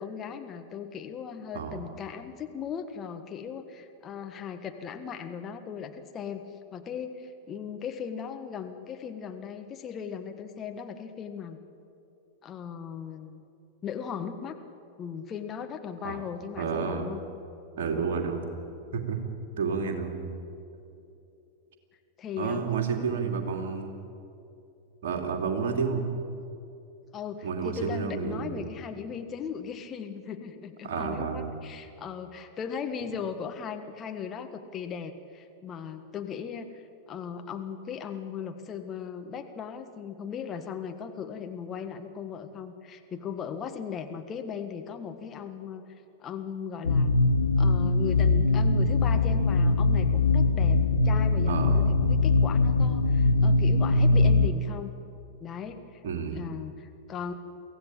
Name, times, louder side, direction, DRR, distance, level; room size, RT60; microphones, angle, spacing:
voice 1, 0.0-6.5 6.7-11.6 12.4-13.5 13.8-14.6 15.0-17.2 22.2-22.6 27.1-45.8 46.2-47.2 47.6-54.9 55.4-56.0 56.3-57.3, left 7 dB, 25° left, 6 dB, 1.5 m, -38 dB
voice 2, 16.6-17.1 17.8-18.6 18.9-19.2 19.6-20.3 22.4-24.0 25.0-26.1 27.4-28.7 30.8-31.5 51.5-51.8 56.0-56.4, right 5 dB, 55° right, 3 dB, 2.7 m, -30 dB
sound 1, 46.8-54.5, left 3 dB, 80° left, 0.9 m, -22 dB
24.0 x 16.0 x 8.8 m, 2.8 s
figure-of-eight pair, 90°, 0 cm